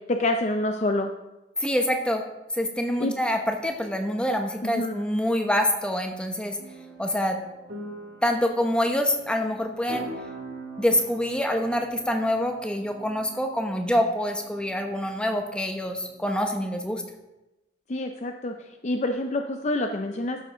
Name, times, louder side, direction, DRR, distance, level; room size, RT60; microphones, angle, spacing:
voice 1, 0.1-1.1 3.0-3.2 4.6-5.0 17.9-18.5 18.8-20.4, left 2 dB, 40° left, 5 dB, 0.5 m, -27 dB
voice 2, 1.6-2.2 2.5-6.6 7.0-7.4 8.2-10.1 10.8-17.0, left 1 dB, 5° left, 4 dB, 0.9 m, -26 dB
sound 1, 6.6-16.2, right 2 dB, 70° right, 2.4 m, -44 dB
13.0 x 6.8 x 3.8 m, 0.99 s
head